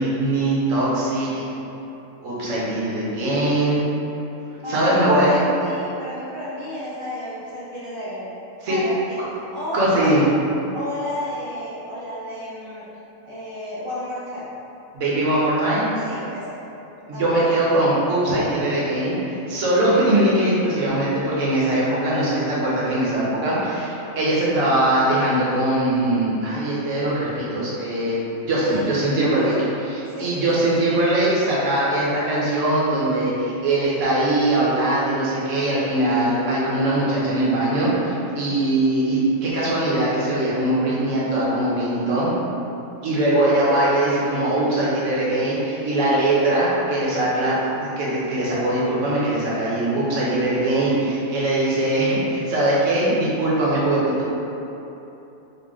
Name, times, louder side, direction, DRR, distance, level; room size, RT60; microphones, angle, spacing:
voice 1, 0.0-1.4 2.2-4.0 4.7-5.3 8.6-8.8 9.7-10.2 14.9-15.8 17.1-28.2 28.5-29.5 29.8-42.3 43.0-54.3, right 1 dB, 65° right, -8 dB, 1.2 m, -21 dB
voice 2, 4.6-8.3 8.7-10.3 10.7-12.9 13.2-14.5 16.0-16.5 17.1-17.5 28.5-29.0 29.4-29.6 30.1-30.7, left 1 dB, 45° right, -9 dB, 0.4 m, -32 dB
3.9 x 2.1 x 3.6 m, 3.0 s
omnidirectional pair, 1.4 m